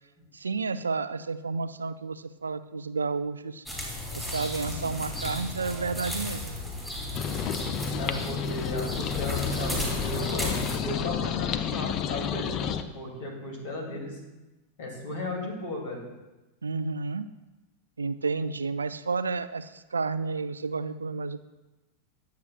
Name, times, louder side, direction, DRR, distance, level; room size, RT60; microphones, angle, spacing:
voice 1, 0.3-3.6 4.2-6.6 16.6-17.3 18.0-21.4, right 4 dB, 75° right, 14 dB, 0.3 m, -31 dB
sound 1, 3.7-10.8, left 1 dB, 5° left, 2.8 m, -34 dB
sound 2, 7.1-12.8, left 8 dB, 35° left, 0.5 m, -31 dB
voice 2, 8.0-10.5 10.8-14.2 14.8-16.0, left 1 dB, 55° left, 0 dB, 2.8 m, -35 dB
10.0 x 8.1 x 2.5 m, 1.1 s
figure-of-eight pair, 90°, 0 cm